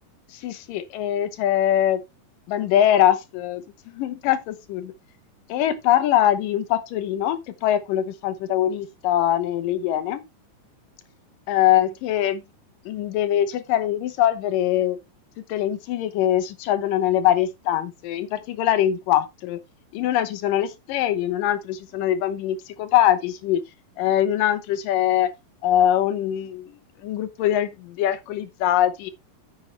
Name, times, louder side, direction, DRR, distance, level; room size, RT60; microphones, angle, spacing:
voice 1, 0.3-2.0 2.5-4.9 5.5-10.2 11.5-12.4 12.9-15.0 15.5-19.6 19.9-23.6 24.0-25.3 25.6-29.1, left 11 dB, 70° left, 2.4 m, -22 dB
9.4 x 7.1 x 3.3 m
omnidirectional pair, 4.3 m